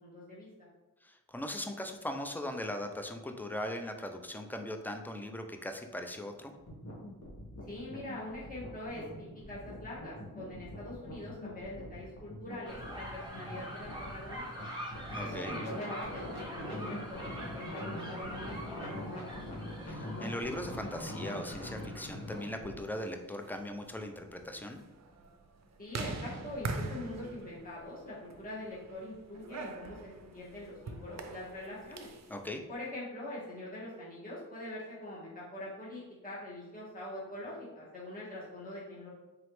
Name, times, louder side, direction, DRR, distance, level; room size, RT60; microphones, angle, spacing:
voice 1, 0.0-0.7 7.7-14.7 15.2-19.4 25.8-32.1 32.7-39.1, left 1 dB, 25° left, -8 dB, 1.4 m, -44 dB
voice 2, 1.0-6.5 15.1-15.6 19.9-24.8 32.3-32.6, left 1 dB, 5° left, 5 dB, 0.4 m, -39 dB
sound 1, 6.5-22.8, left 1 dB, 50° left, 1.4 m, -43 dB
sound 2, 12.6-22.5, right 1 dB, 15° right, 1.0 m, -44 dB
sound 3, 23.2-32.3, right 3 dB, 55° right, 0.5 m, -43 dB
3.9 x 3.1 x 3.1 m, 1.1 s
wide cardioid pair, 75°, 33 cm